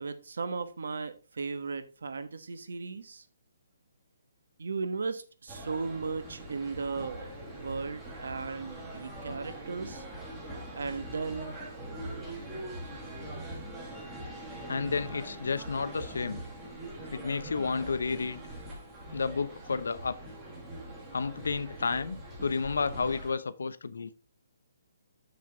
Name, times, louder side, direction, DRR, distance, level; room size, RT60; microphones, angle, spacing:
voice 1, 0.0-3.2 4.6-10.0 10.8-11.6, right 4 dB, 70° right, 1.1 m, -36 dB
sound 1, 5.5-23.3, right 1 dB, 10° right, 1.4 m, -42 dB
voice 2, 14.7-16.4 17.1-18.4 19.1-20.2 21.1-24.1, left 4 dB, 85° left, 0.7 m, -31 dB
6.8 x 6.3 x 3.8 m
hypercardioid pair, 180°, 0 cm